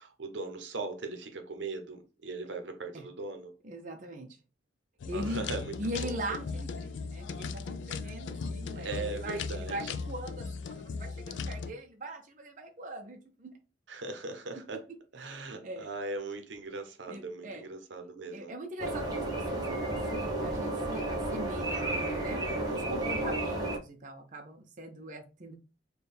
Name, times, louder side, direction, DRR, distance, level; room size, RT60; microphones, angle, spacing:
voice 1, 0.0-3.5 5.1-5.7 6.0-6.2 8.7-9.9 13.9-14.8 15.1-18.5 22.7-23.1, right 3 dB, 80° right, 0.7 m, -39 dB
voice 2, 3.6-4.4 5.1-5.5 5.8-13.5 15.4-15.9 17.1-17.6 18.3-22.4 22.7-25.5, right 1 dB, 45° right, 0.6 m, -41 dB
sound 1, 5.0-11.7, left 4 dB, 80° left, 0.4 m, -38 dB
sound 2, 18.8-23.8, right 2 dB, 20° right, 0.8 m, -32 dB
4.3 x 2.3 x 3.3 m
head